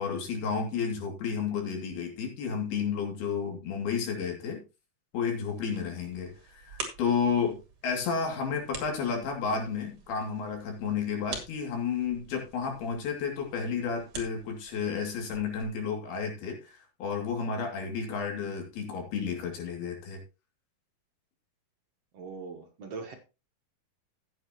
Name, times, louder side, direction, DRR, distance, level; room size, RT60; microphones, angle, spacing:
voice 1, 0.0-4.6 5.1-20.2, left 6 dB, 90° left, 2 dB, 4.6 m, -32 dB
sound 1, 5.5-15.6, right 4 dB, 40° right, 3.0 m, -46 dB
voice 2, 22.1-23.1, right 4 dB, 55° right, 3 dB, 2.0 m, -41 dB
14.5 x 8.8 x 3.0 m, 0.29 s
omnidirectional pair, 4.3 m